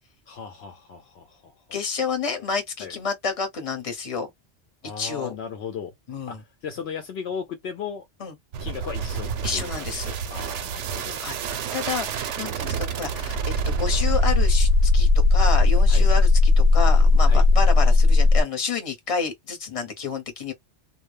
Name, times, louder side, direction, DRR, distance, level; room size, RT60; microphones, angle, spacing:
voice 1, 0.3-1.5 2.8-2.9 4.8-5.9 6.3-8.1 8.6-9.3 9.5-9.9 10.3-11.2 15.9-16.1 17.3-17.4, left 6 dB, 70° left, 0.8 m, -36 dB
voice 2, 1.7-4.3 5.0-5.3 6.1-6.4 8.2-8.3 9.4-10.1 11.2-11.4 11.7-20.5, left 5 dB, 35° left, 0.9 m, -29 dB
sound 1, 8.5-18.4, left 2 dB, 85° right, 0.9 m, -20 dB
2.2 x 2.0 x 3.2 m
omnidirectional pair, 1.2 m